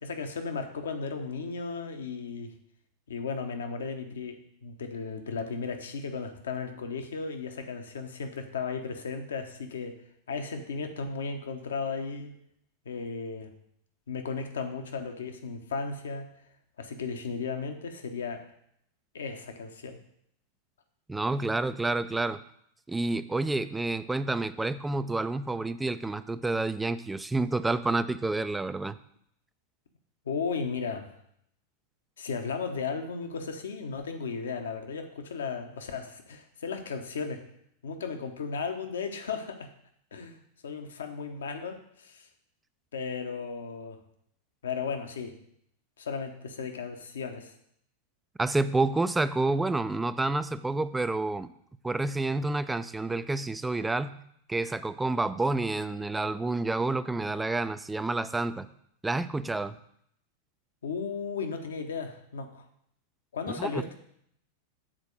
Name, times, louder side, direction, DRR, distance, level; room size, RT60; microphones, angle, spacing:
voice 1, 0.0-2.5 3.1-4.4 4.6-9.9 10.3-12.3 12.8-13.5 14.1-16.3 16.8-18.4 19.1-20.0 30.2-31.1 32.2-37.4 37.8-39.7 40.1-42.3 42.9-44.0 44.6-45.3 46.0-47.5 60.8-62.7 63.3-63.9, left 5 dB, 65° left, 6 dB, 1.0 m, -35 dB
voice 2, 21.1-22.4 22.9-29.0 48.4-51.5 51.8-54.2 54.5-58.7 59.0-59.7 63.5-63.8, right 2 dB, 10° right, 13 dB, 0.4 m, -29 dB
7.5 x 4.4 x 6.5 m, 0.70 s
figure-of-eight pair, 90°, 0 cm